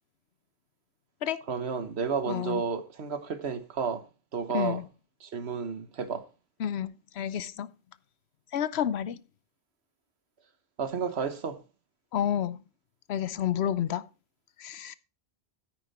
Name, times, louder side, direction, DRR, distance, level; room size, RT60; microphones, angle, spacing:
voice 1, 1.5-4.0 4.3-4.8 5.2-6.2 10.8-11.6, right 5 dB, 85° right, 1.4 m, -31 dB
voice 2, 2.3-2.6 4.5-4.8 6.6-7.7 8.5-9.2 12.1-12.6 13.1-14.0 14.6-14.9, left 10 dB, 80° left, 0.9 m, -30 dB
9.3 x 8.9 x 4.1 m
omnidirectional pair, 1.1 m